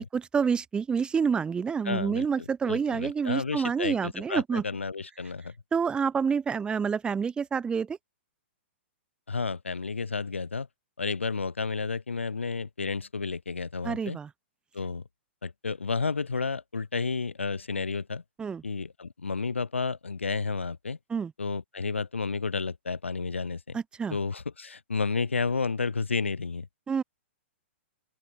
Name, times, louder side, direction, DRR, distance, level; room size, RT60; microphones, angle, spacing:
voice 1, 0.0-4.6 5.7-8.0 13.8-14.3 18.4-18.6 21.1-21.3 23.7-24.2 26.9-27.0, right 6 dB, 15° right, 3.3 m, -28 dB
voice 2, 1.8-2.3 2.7-5.5 9.3-10.7 11.0-14.2 14.7-15.0 15.4-18.2 18.6-21.0 21.4-23.8 24.1-26.7, left 4 dB, 85° left, 1.0 m, -31 dB
open air
figure-of-eight pair, 115°, 7 cm